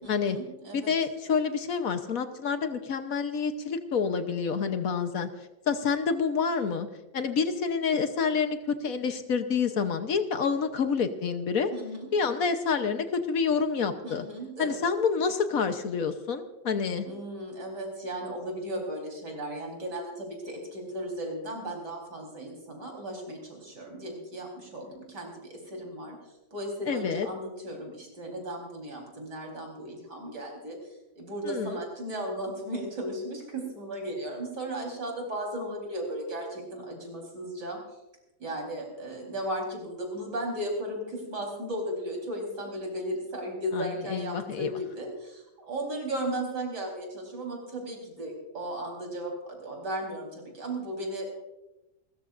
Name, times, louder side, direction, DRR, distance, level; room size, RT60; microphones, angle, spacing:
voice 1, 0.0-0.9 11.7-12.1 14.0-14.8 17.0-26.2 26.5-30.8 31.2-37.8 38.4-51.3, right 1 dB, 85° right, 1 dB, 4.7 m, -35 dB
voice 2, 0.7-5.3 5.7-6.9 7.1-11.7 12.1-14.2 14.6-17.1 26.9-27.3 31.5-31.8 43.7-44.7, left 5 dB, 60° left, 8 dB, 1.3 m, -28 dB
29.0 x 14.0 x 2.6 m, 0.97 s
omnidirectional pair, 1.8 m